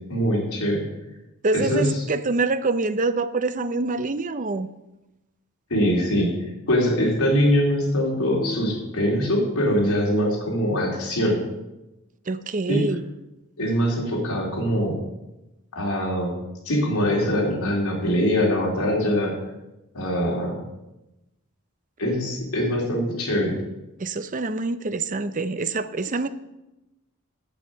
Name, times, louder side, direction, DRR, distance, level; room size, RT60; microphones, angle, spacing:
voice 1, 0.1-0.9 1.5-2.0 5.7-6.3 6.7-11.4 12.7-12.9 13.6-15.0 15.7-16.4 16.7-19.3 19.9-20.6 22.0-23.5, equal, 85° left, -2 dB, 3.6 m, -23 dB
voice 2, 1.4-4.7 12.3-13.0 24.0-26.3, right 3 dB, 35° right, 12 dB, 0.6 m, -25 dB
8.4 x 7.8 x 8.6 m, 0.97 s
head